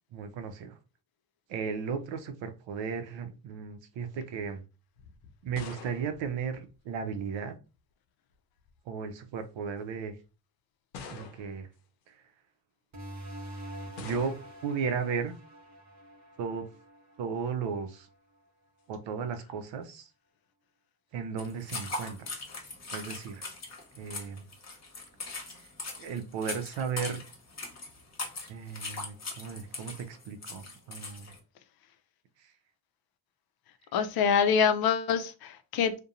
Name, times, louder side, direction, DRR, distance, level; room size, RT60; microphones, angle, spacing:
voice 1, 0.1-0.8 1.5-4.6 5.4-7.5 8.9-10.2 11.1-11.7 12.1-12.2 14.0-15.4 16.4-16.7 17.2-18.1 18.9-20.1 21.1-22.3 22.9-23.5 23.9-24.4 25.5-25.6 26.0-27.2 28.5-31.3 32.4-32.5, right 6 dB, 65° right, 0.6 m, -35 dB
sound 1, 5.0-7.3 8.3-8.8 9.6-9.7 10.9-11.7 14.0-14.7, left 5 dB, 90° left, 0.6 m, -46 dB
sound 2, 12.9-18.1, right 1 dB, 35° right, 0.8 m, -46 dB
sound 3, 21.4-31.4, left 3 dB, 35° left, 1.0 m, -40 dB
voice 2, 33.9-36.0, left 7 dB, 50° left, 0.5 m, -25 dB
2.7 x 2.2 x 2.4 m
supercardioid pair, 55°, 48 cm